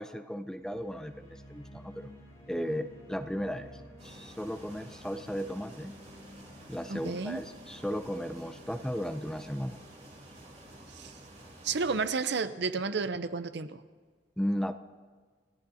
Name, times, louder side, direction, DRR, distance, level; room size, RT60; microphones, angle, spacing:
voice 1, 0.0-2.1 2.5-3.7 4.0-5.9 6.7-9.8 14.4-14.7, equal, 5° left, 9 dB, 0.4 m, -35 dB
sound 1, 0.6-10.6, left 1 dB, 20° left, 5.6 m, -53 dB
sound 2, 4.0-12.1, right 1 dB, 40° right, 3.6 m, -51 dB
voice 2, 6.9-7.4 11.0-11.1 11.6-13.8, right 4 dB, 65° right, 11 dB, 0.7 m, -31 dB
28.0 x 15.0 x 2.8 m, 1.5 s
head